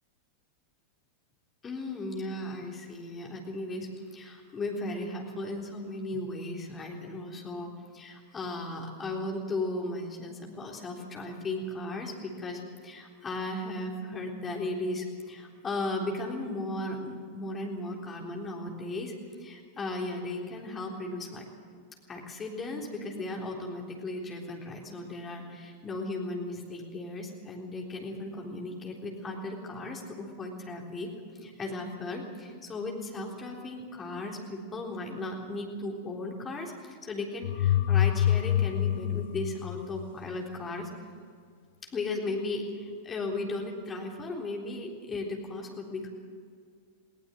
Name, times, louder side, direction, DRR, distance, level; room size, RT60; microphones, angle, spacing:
voice 1, 1.6-19.1 19.4-21.5 22.1-31.1 31.3-40.9 41.8-46.1, left 2 dB, 20° left, 0 dB, 3.7 m, -36 dB
sound 1, 37.4-40.3, left 11 dB, 55° left, 0.5 m, -26 dB
19.5 x 18.0 x 7.8 m, 2.1 s
figure-of-eight pair, 90°, 0 cm